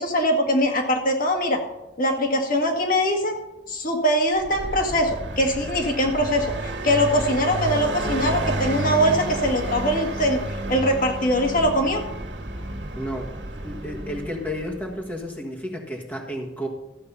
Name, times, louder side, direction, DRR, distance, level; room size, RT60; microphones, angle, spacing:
voice 1, 0.0-1.6 2.0-3.4 3.7-10.4 10.7-12.0, equal, 50° left, 2 dB, 1.8 m, -22 dB
Car passing by, 4.4-15.0, right 1 dB, 85° right, 1.6 m, -31 dB
voice 2, 12.9-16.7, equal, 10° left, 0 dB, 1.5 m, -32 dB
14.0 x 7.8 x 5.6 m, 0.98 s
head